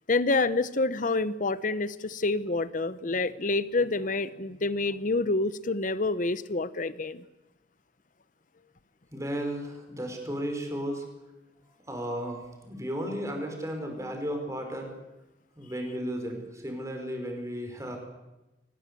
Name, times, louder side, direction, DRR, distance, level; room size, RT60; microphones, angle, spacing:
voice 1, 0.1-7.2, left 3 dB, 45° left, 15 dB, 0.8 m, -27 dB
voice 2, 9.1-11.0 11.9-12.4 12.7-14.9 15.6-18.0, equal, 15° right, 3 dB, 5.2 m, -34 dB
23.5 x 19.5 x 8.4 m, 1.0 s
head